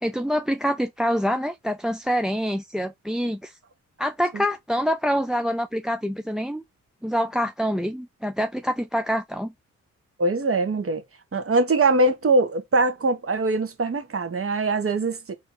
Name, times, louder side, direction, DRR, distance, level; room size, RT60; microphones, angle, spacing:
voice 1, 0.0-3.6 4.0-6.6 7.0-9.5, equal, ahead, 0.4 m, -26 dB
voice 2, 10.2-11.0 11.3-15.3, right 2 dB, 40° right, 1.3 m, -22 dB
3.9 x 2.7 x 3.9 m
supercardioid pair, 50°, 35 cm